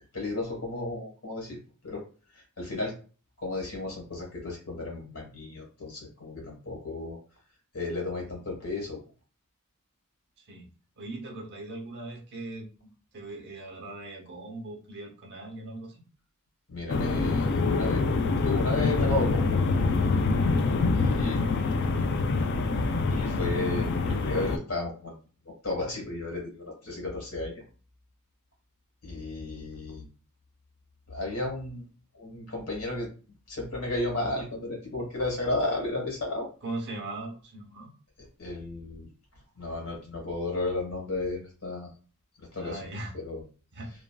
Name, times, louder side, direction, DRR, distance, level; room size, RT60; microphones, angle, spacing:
voice 1, 0.1-1.6 1.8-2.0 2.6-2.9 3.4-7.2 7.7-9.0 16.7-18.0 18.3-19.6 20.9-21.8 22.4-22.5 23.0-25.1 25.4-27.6 29.0-30.1 31.1-31.8 32.1-33.1 33.5-36.5 38.4-39.1 39.6-41.9 42.4-42.8 43.1-43.4, left 2 dB, 75° left, -1 dB, 1.4 m, -33 dB
voice 2, 10.4-10.7 11.0-12.7 13.1-16.0 21.2-21.4 36.6-37.9 42.6-43.1 43.7-43.9, right 2 dB, 50° right, 1 dB, 0.8 m, -39 dB
sound 1, 16.9-24.6, left 3 dB, 50° left, 0.3 m, -25 dB
3.0 x 2.5 x 2.3 m, 0.38 s
head